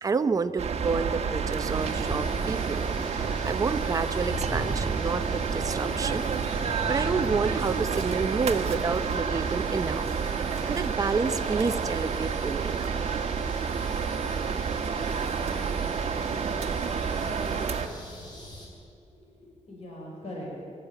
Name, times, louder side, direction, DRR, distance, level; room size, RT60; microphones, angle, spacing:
voice 1, 0.0-10.1 10.7-12.9, right 4 dB, 30° right, 10 dB, 0.7 m, -29 dB
sound 1, 0.6-17.9, right 6 dB, 60° right, 1.5 m, -29 dB
sound 2, 1.7-18.7, left 1 dB, 35° left, 5.5 m, -41 dB
voice 2, 18.1-18.6 19.1-20.5, left 1 dB, 60° left, -3 dB, 5.4 m, -43 dB
25.5 x 13.0 x 9.1 m, 2.7 s
wide cardioid pair, 160°, 12 cm